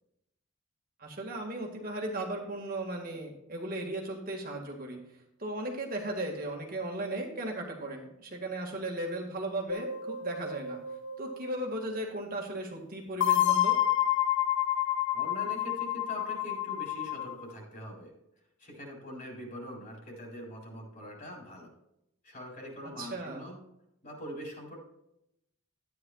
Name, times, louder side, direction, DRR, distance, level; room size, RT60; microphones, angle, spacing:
voice 1, 1.0-5.0 5.4-10.8 11.2-13.8 23.0-23.5, right 1 dB, 40° right, 0 dB, 1.9 m, -36 dB
sound 1, 9.7-12.0 13.2-17.4, left 11 dB, 55° left, 0.5 m, -29 dB
voice 2, 15.1-18.1 18.6-21.7 22.2-23.6 24.0-24.8, equal, 40° left, -1 dB, 4.0 m, -43 dB
13.5 x 9.7 x 2.4 m, 0.81 s
head